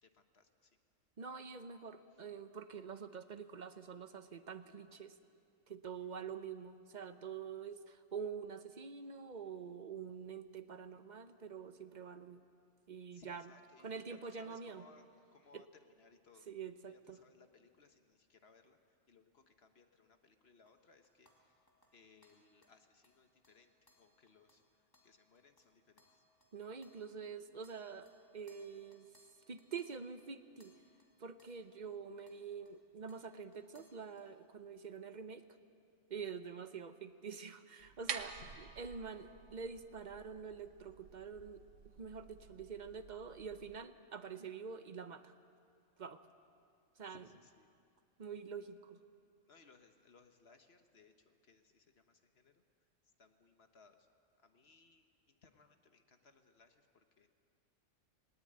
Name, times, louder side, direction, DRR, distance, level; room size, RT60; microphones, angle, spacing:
voice 1, 0.0-0.7 13.1-16.5 16.8-18.8 19.1-21.6 21.9-24.6 25.0-26.2 38.3-38.5 47.1-47.7 49.5-52.6 53.2-54.1 54.4-57.3, left 4 dB, 50° left, 7 dB, 1.4 m, -65 dB
voice 2, 1.2-5.2 5.7-12.4 12.9-13.5 13.8-14.8 15.5-15.6 16.5-17.2 26.5-29.1 29.5-30.7 31.2-35.5 36.1-41.6 42.0-45.3 46.0-46.2 47.0-47.3 48.2-49.0, right 6 dB, 40° right, 10 dB, 0.9 m, -46 dB
sound 1, 20.7-27.4 27.6-32.0 32.3-32.8 33.1-34.3, left 1 dB, 15° left, 2.6 m, -72 dB
sound 2, 37.8-43.8, right 6 dB, 70° right, 1.3 m, -49 dB
20.0 x 18.0 x 8.7 m, 2.4 s
omnidirectional pair, 1.4 m